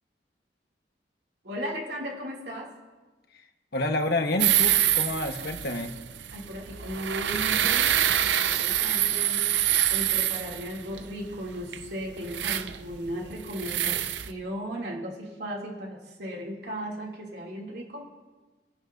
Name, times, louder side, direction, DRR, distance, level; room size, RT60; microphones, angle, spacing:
voice 1, 1.4-2.7 6.3-9.6 9.9-18.1, equal, 70° right, -1 dB, 2.7 m, -36 dB
voice 2, 3.7-5.9, left 2 dB, 65° left, 4 dB, 1.3 m, -28 dB
sound 1, 4.4-14.3, right 11 dB, 85° right, 0.6 m, -26 dB
27.5 x 12.0 x 2.7 m, 1.2 s
head